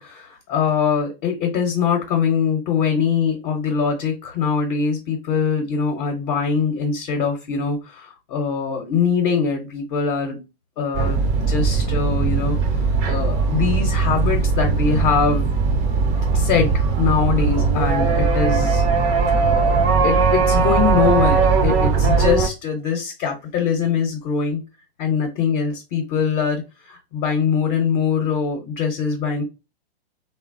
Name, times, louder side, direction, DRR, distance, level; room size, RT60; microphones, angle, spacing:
voice 1, 0.0-10.4 10.8-11.2 11.5-15.5 16.3-18.8 19.4-24.6 25.0-29.4, left 6 dB, 35° left, 2 dB, 0.8 m, -22 dB
sound 1, 10.9-22.5, right 5 dB, 30° right, 0.5 m, -19 dB
3.2 x 2.1 x 2.5 m, 0.26 s
hypercardioid pair, 120°, 31 cm